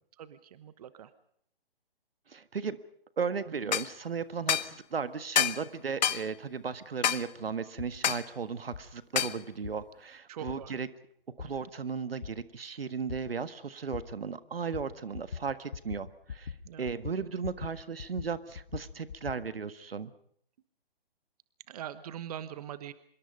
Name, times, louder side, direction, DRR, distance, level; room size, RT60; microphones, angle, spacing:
voice 1, 0.2-1.1 3.5-3.7 10.3-10.8 11.4-11.5 16.6-16.9 21.7-22.9, right 10 dB, 40° right, 14 dB, 1.2 m, -42 dB
voice 2, 2.3-2.8 3.2-10.9 11.4-16.5 16.8-20.1, right 5 dB, 75° right, 13 dB, 1.6 m, -36 dB
sound 1, 3.7-3.9 4.5-4.7 5.4-5.6 6.0-6.2 7.0-7.2 8.0-8.3 9.2-9.4, left 9 dB, 45° left, 0.9 m, -27 dB
sound 2, 7.8-7.9 8.7-8.8 9.6-9.7 10.5-10.6 11.4-11.5 12.2-12.3 13.1-13.2 13.9-14.0 14.7-14.9 15.1-15.4 15.7-16.0 16.3-16.6 16.8-17.7 18.0-19.4, left 6 dB, 60° left, 2.0 m, -40 dB
25.5 x 22.5 x 5.4 m, 0.66 s
figure-of-eight pair, 140°, 30 cm